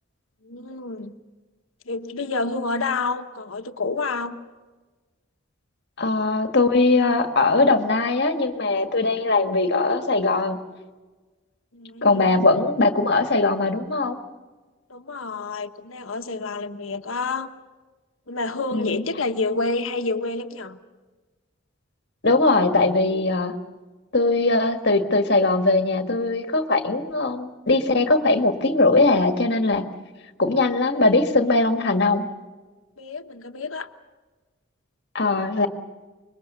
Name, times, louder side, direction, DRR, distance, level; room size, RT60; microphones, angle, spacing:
voice 1, 0.4-1.2 1.9-4.4 11.7-12.4 14.9-17.5 18.3-20.8 33.0-33.9, left 3 dB, 85° left, 8 dB, 1.3 m, -29 dB
voice 2, 6.0-10.6 12.0-14.2 18.7-19.0 22.2-23.5 24.1-29.9 30.4-32.3 35.1-35.7, left 3 dB, 55° left, 7 dB, 1.8 m, -20 dB
25.5 x 22.5 x 6.8 m, 1.3 s
head